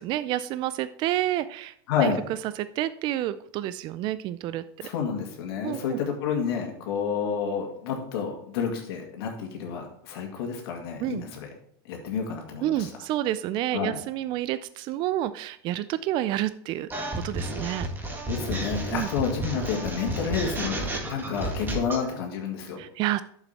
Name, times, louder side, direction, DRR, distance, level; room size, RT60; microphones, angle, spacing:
voice 1, 0.0-2.1 2.6-4.9 5.6-6.0 11.0-11.2 12.6-17.9 18.9-19.1 22.8-23.2, right 13 dB, 40° right, 14 dB, 0.4 m, -29 dB
voice 2, 1.9-2.2 4.8-11.5 11.9-12.9 13.7-14.0 18.2-22.8, left 6 dB, 75° left, 1 dB, 2.1 m, -30 dB
sound 1, 16.9-22.0, right 2 dB, 15° right, 1.8 m, -32 dB
9.0 x 7.1 x 4.1 m, 0.67 s
supercardioid pair, 135°, 13 cm